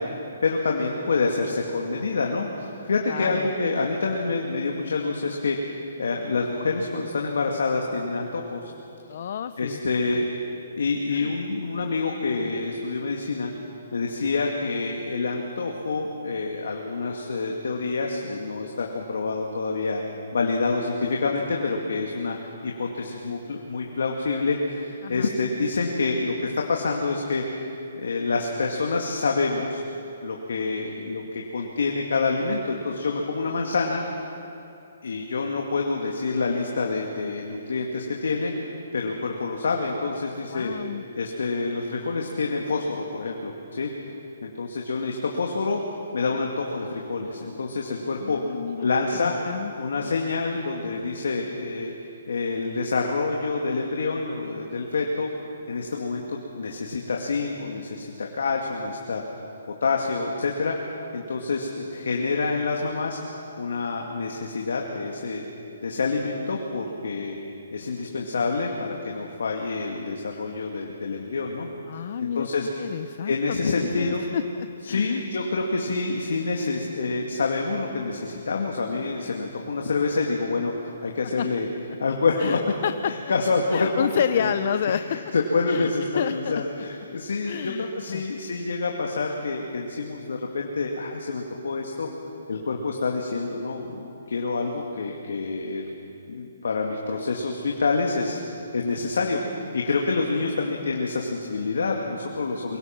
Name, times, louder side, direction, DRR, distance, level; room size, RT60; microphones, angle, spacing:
voice 1, 0.0-8.7 9.6-10.3 10.8-13.5 13.9-20.0 20.3-27.7 28.0-29.8 30.2-34.0 35.0-40.7 41.2-43.9 44.4-45.8 46.1-48.4 48.8-49.4 49.7-51.9 52.3-55.3 55.7-59.2 59.8-63.2 63.6-65.4 65.8-67.4 67.7-72.7 73.2-74.2 74.8-81.7 82.0-82.6 83.1-84.1 84.3-84.5 85.3-92.1 92.5-95.9 96.3-98.4 98.7-99.4 99.7-102.8, left 3 dB, 80° left, 0 dB, 2.4 m, -27 dB
voice 2, 3.1-3.5 9.1-9.8 11.1-11.4 25.0-25.3 40.5-41.0 48.2-48.9 49.1-50.1 71.9-75.2 81.4-81.5 82.4-83.1 83.7-85.2 85.7-86.6 87.5-88.2, left 8 dB, 45° left, 11 dB, 0.6 m, -30 dB
24.5 x 23.0 x 6.1 m, 2.7 s
hypercardioid pair, 165°, 0 cm